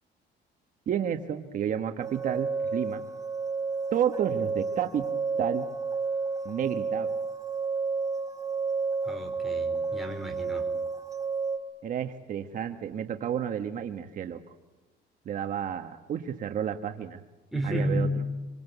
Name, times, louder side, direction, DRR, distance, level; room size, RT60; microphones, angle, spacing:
voice 1, 0.9-3.0 3.9-5.0 5.4-5.7 6.4-7.1 11.8-14.4 15.2-17.2 17.6-18.1, right 9 dB, 45° right, 6 dB, 1.5 m, -31 dB
sound 1, 2.0-11.6, right 4 dB, 20° right, 3.4 m, -31 dB
voice 2, 9.0-10.7 17.5-18.2, equal, ahead, 2 dB, 4.8 m, -31 dB
27.0 x 26.5 x 8.2 m, 1.2 s
cardioid pair, 155°, 19 cm